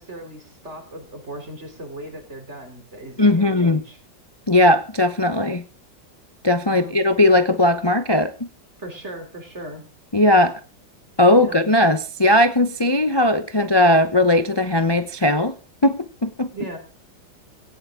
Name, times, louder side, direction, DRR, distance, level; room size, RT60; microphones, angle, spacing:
voice 1, 0.0-4.0 6.6-6.9 8.8-9.8 11.3-11.6 16.5-16.8, right 1 dB, 35° right, 4 dB, 3.6 m, -37 dB
voice 2, 3.2-3.8 4.5-5.6 6.4-8.5 10.1-10.6 11.2-15.5 15.8-16.0 16.2-16.5, left 1 dB, 35° left, 10 dB, 0.4 m, -18 dB
17.5 x 15.5 x 3.7 m, 0.35 s
omnidirectional pair, 2.0 m